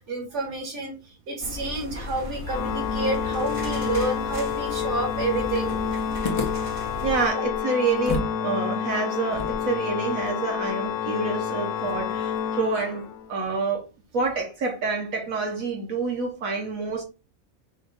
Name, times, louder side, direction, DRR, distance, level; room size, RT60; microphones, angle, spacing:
voice 1, 0.0-5.7, right 2 dB, 55° right, 2.1 m, -29 dB
sound 1, 1.4-7.3, left 1 dB, 25° right, 0.9 m, -36 dB
Organ, 2.4-13.3, left 8 dB, 70° left, 0.8 m, -29 dB
sound 2, 6.2-8.4 8.7-8.8 9.3-12.4, left 3 dB, 30° left, 0.6 m, -35 dB
voice 2, 7.0-13.8 14.1-17.0, right 4 dB, 75° right, 1.3 m, -27 dB
5.3 x 2.3 x 3.9 m
omnidirectional pair, 1.5 m